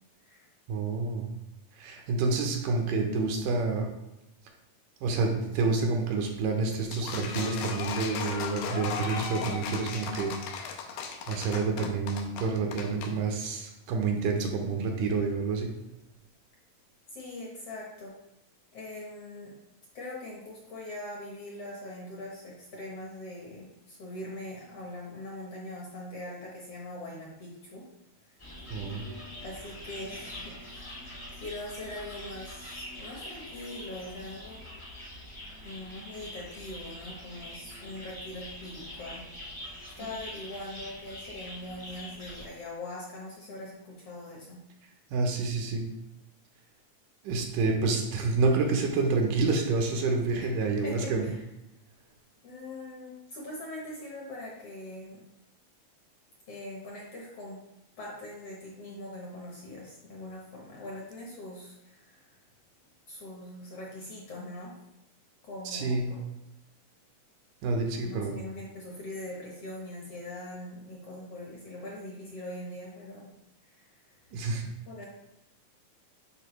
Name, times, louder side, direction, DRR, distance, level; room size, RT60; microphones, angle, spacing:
voice 1, 0.7-1.3 1.8-3.9 5.0-10.4 11.3-15.7 28.7-29.0 45.1-45.9 47.2-51.3 65.7-66.1 67.6-68.3 74.3-74.7, right 3 dB, 75° right, 2 dB, 2.4 m, -28 dB
sound 1, 6.9-13.1, left 6 dB, 80° left, 2.3 m, -36 dB
voice 2, 17.1-18.1 18.7-19.5 19.9-27.8 28.4-28.7 29.4-31.0 31.3-34.6 35.6-39.6 40.0-44.6 50.3-50.5 50.8-51.4 52.4-55.2 56.5-57.6 58.0-62.3 63.1-64.7 65.4-66.2 67.9-73.3 73.7-73.9 74.9-75.1, left 1 dB, 60° left, -3 dB, 1.7 m, -42 dB
sound 2, 28.4-42.4, left 1 dB, 30° left, 0.5 m, -44 dB
9.9 x 4.3 x 3.2 m, 0.92 s
omnidirectional pair, 4.0 m